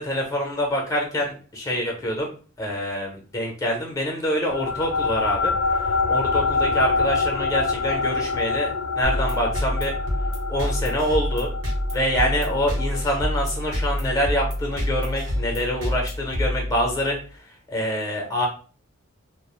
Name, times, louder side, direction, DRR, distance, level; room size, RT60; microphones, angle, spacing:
voice 1, 0.0-2.3 2.6-9.9 10.5-11.5 11.9-18.5, equal, 15° left, 1 dB, 0.6 m, -26 dB
sound 1, 4.5-15.3, left 4 dB, 80° left, 0.3 m, -26 dB
sound 2, 9.0-17.2, equal, 65° right, 0.9 m, -27 dB
2.4 x 2.0 x 2.9 m, 0.38 s
head